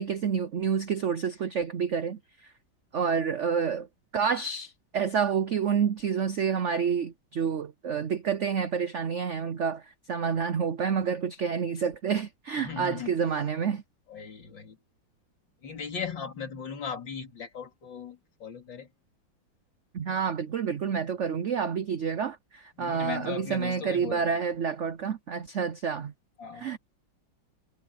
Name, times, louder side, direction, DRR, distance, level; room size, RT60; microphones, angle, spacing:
voice 1, 0.0-2.2 2.9-3.9 4.1-9.8 10.1-13.8 19.9-26.1 26.6-26.8, right 6 dB, 75° right, 0.6 m, -28 dB
voice 2, 12.6-13.2 14.1-14.8 15.6-18.9 22.8-24.4 26.4-26.7, left 6 dB, 65° left, 3.4 m, -38 dB
omnidirectional pair, 2.2 m